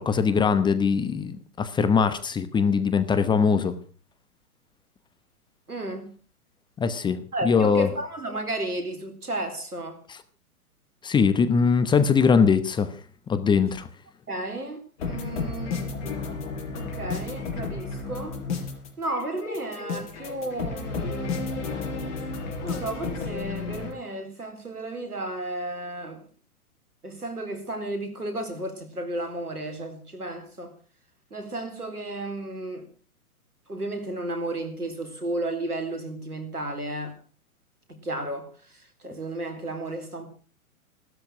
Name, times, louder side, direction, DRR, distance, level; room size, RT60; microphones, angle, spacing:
voice 1, 0.0-3.7 6.8-7.9 10.1-10.2 11.0-12.9 13.3-13.9, left 5 dB, 10° left, 1.0 m, -22 dB
voice 2, 5.7-6.1 7.3-10.0 14.3-15.9 16.7-18.4 19.0-21.5 22.6-26.3 27.0-30.7 31.3-32.9 33.7-37.1 37.9-38.5 39.0-40.3, right 1 dB, 90° right, 4.2 m, -33 dB
sound 1, 15.0-23.9, left 4 dB, 50° left, 4.9 m, -32 dB
16.0 x 13.0 x 6.1 m
figure-of-eight pair, 120°, 44 cm